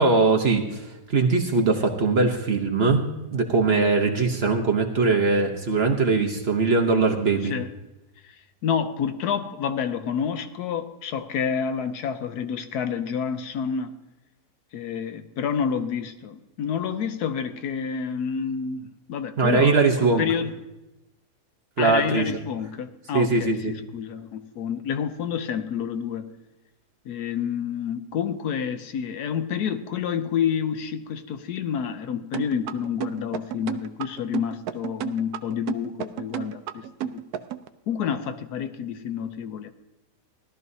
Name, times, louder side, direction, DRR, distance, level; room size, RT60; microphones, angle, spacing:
voice 1, 0.0-3.0 3.3-7.5 19.4-20.2 21.8-22.3 23.1-23.7, right 3 dB, 45° right, 2 dB, 1.0 m, -21 dB
voice 2, 8.6-13.9 14.7-20.5 21.8-26.3 27.1-37.2 37.9-39.7, left 7 dB, 75° left, 9 dB, 1.2 m, -29 dB
sound 1, 32.3-37.7, right 12 dB, 70° right, 1.0 m, -31 dB
17.5 x 12.5 x 2.7 m, 1.0 s
omnidirectional pair, 1.8 m